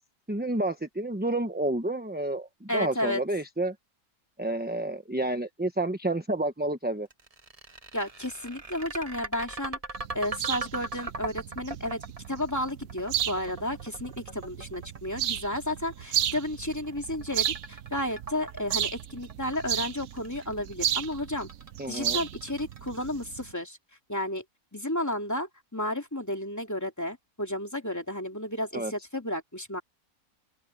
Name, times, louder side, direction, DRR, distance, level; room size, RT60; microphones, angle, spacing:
voice 1, 0.3-3.7 4.4-7.1 21.8-22.2 28.7-28.9, right 1 dB, 5° right, 0.9 m, -30 dB
voice 2, 2.7-3.2 7.9-9.8 10.1-12.0 12.3-21.5 21.9-23.8 24.1-24.4 24.7-29.8, left 1 dB, 10° left, 2.8 m, -32 dB
sound 1, 7.1-23.2, right 3 dB, 25° right, 1.4 m, -40 dB
sound 2, 10.0-23.5, right 11 dB, 65° right, 1.1 m, -34 dB
open air
omnidirectional pair, 1.7 m